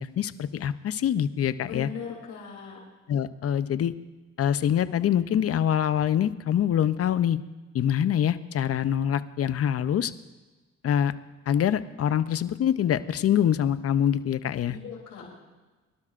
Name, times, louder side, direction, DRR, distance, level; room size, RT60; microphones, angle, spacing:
voice 1, 0.0-1.9 3.1-3.9 4.4-7.4 7.7-10.1 10.8-11.1 11.5-14.8, left 9 dB, 50° left, 14 dB, 0.6 m, -25 dB
voice 2, 1.6-2.8 14.6-15.3, left 6 dB, 80° left, -2 dB, 3.1 m, -39 dB
22.5 x 12.0 x 2.5 m, 1.2 s
cardioid pair, 90°, 30 cm